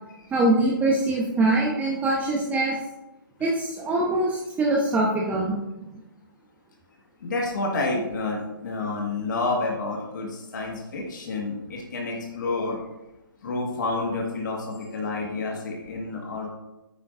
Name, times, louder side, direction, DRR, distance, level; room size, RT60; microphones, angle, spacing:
voice 1, 0.3-2.8 3.4-5.6, right 2 dB, 10° right, -3 dB, 1.1 m, -23 dB
voice 2, 7.2-12.8 13.4-16.5, left 3 dB, 55° left, -1 dB, 1.8 m, -29 dB
9.5 x 9.4 x 2.7 m, 1.0 s
figure-of-eight pair, 130°, 12 cm